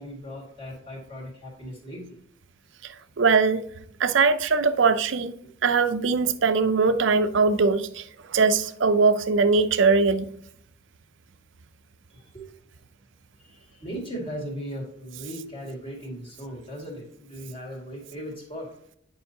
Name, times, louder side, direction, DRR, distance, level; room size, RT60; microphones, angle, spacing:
voice 1, 0.0-2.2 12.1-12.5 13.4-18.7, equal, 30° left, 2.0 m, -38 dB
voice 2, 2.8-3.7 4.0-5.3 5.6-10.3, right 4 dB, 70° right, 0.5 m, -21 dB
9.4 x 5.5 x 2.8 m
head